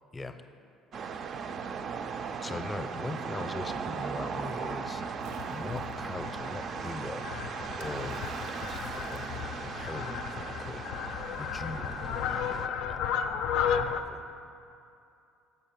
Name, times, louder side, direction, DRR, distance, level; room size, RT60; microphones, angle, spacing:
sound 1, 0.9-12.7, right 6 dB, 50° right, 0.3 m, -38 dB
voice 1, 2.4-5.0 5.5-7.3 7.8-8.2 8.6-8.8 9.1-10.9 11.4-13.0 13.4-14.2, left 2 dB, 20° left, 8 dB, 0.5 m, -40 dB
Fowl, 4.6-14.0, left 8 dB, 75° left, 0.3 m, -34 dB
Splash splatter, 5.2-6.1 7.8-10.2, right 5 dB, 85° right, 0.7 m, -54 dB
6.5 x 5.5 x 5.8 m, 2.6 s
supercardioid pair, 85°, 0 cm